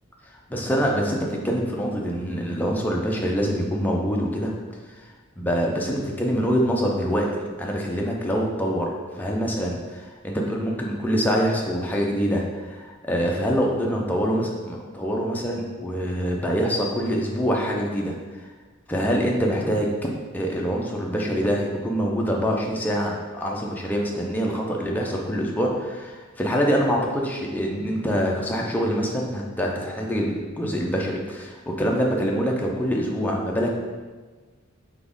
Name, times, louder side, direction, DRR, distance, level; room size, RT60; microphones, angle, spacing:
voice 1, 0.5-4.5 5.4-18.1 18.9-20.1 20.3-33.7, equal, 10° left, -1 dB, 0.5 m, -25 dB
4.1 x 3.4 x 3.7 m, 1.4 s
head